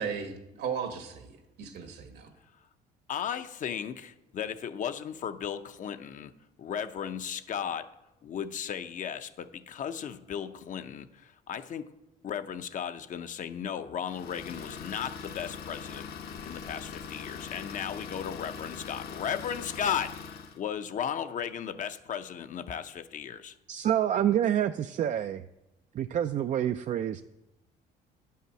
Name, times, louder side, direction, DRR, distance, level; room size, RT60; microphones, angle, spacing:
voice 1, 0.0-2.3, right 6 dB, 75° right, 6 dB, 1.8 m, -36 dB
voice 2, 3.1-7.9 8.2-11.9 12.2-16.1 16.4-20.2 20.5-23.5, left 8 dB, 50° left, 10 dB, 0.7 m, -35 dB
Idling, 14.1-20.6, left 6 dB, 65° left, 1.0 m, -42 dB
voice 3, 23.7-25.4 25.9-27.2, right 10 dB, 45° right, 9 dB, 0.4 m, -27 dB
10.0 x 5.7 x 7.5 m, 0.96 s
cardioid pair, 110°, 17 cm